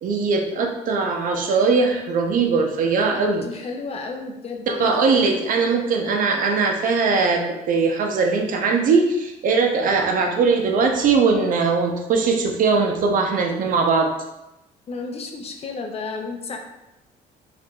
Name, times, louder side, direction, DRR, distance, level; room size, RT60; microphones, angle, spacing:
voice 1, 0.0-3.5 4.7-14.1, right 4 dB, 55° right, 3 dB, 0.5 m, -20 dB
voice 2, 3.3-5.3 14.9-16.6, left 4 dB, 35° left, 3 dB, 0.5 m, -32 dB
4.4 x 2.4 x 2.3 m, 0.93 s
cardioid pair, 110°, 17 cm